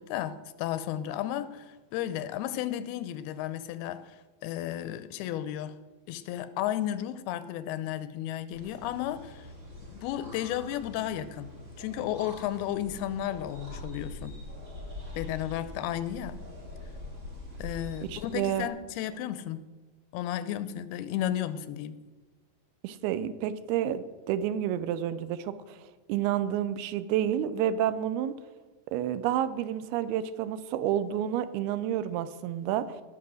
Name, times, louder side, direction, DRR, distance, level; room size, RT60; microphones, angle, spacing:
voice 1, 0.0-4.2 4.4-5.8 6.1-9.5 9.9-11.5 11.8-14.4 15.2-16.4 17.6-19.7 20.1-22.0, left 12 dB, 90° left, 14 dB, 2.6 m, -33 dB
sound 1, 8.5-18.7, left 1 dB, 25° right, 1.7 m, -44 dB
voice 2, 18.1-18.7 22.8-25.8 26.1-28.3 28.9-33.0, right 10 dB, 85° right, 13 dB, 2.7 m, -30 dB
17.5 x 6.1 x 6.3 m, 1.3 s
omnidirectional pair, 4.4 m